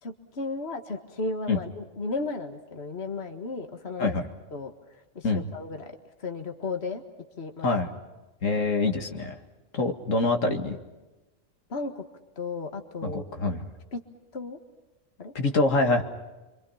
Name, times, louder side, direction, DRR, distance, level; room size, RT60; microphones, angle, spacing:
voice 1, 0.0-4.2 4.5-4.7 5.2-6.0 6.2-7.0 7.4-7.7 11.7-12.0 12.4-13.2 13.9-14.0 14.3-14.6 15.2-15.3, left 3 dB, 55° left, 5 dB, 2.0 m, -34 dB
voice 2, 8.4-9.4 9.7-10.8 13.0-13.7 15.3-16.0, left 3 dB, 90° left, 4 dB, 2.4 m, -25 dB
28.5 x 25.0 x 5.7 m, 1.1 s
omnidirectional pair, 1.3 m